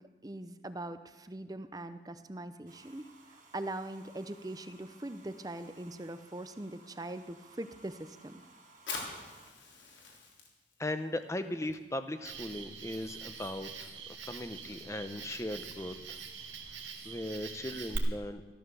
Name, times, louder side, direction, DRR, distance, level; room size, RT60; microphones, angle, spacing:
voice 1, 0.0-8.4, right 1 dB, 20° right, 11 dB, 0.6 m, -42 dB
Domestic sounds home sounds, 2.7-9.5, right 3 dB, 40° right, 1.8 m, -59 dB
Fire, 8.7-15.9, left 4 dB, 75° left, 3.5 m, -48 dB
voice 2, 10.8-16.2 17.0-18.5, left 1 dB, 15° left, 10 dB, 0.8 m, -38 dB
Cricket, 12.2-18.0, right 5 dB, 80° right, 1.9 m, -44 dB
14.5 x 13.0 x 7.0 m, 1.3 s
head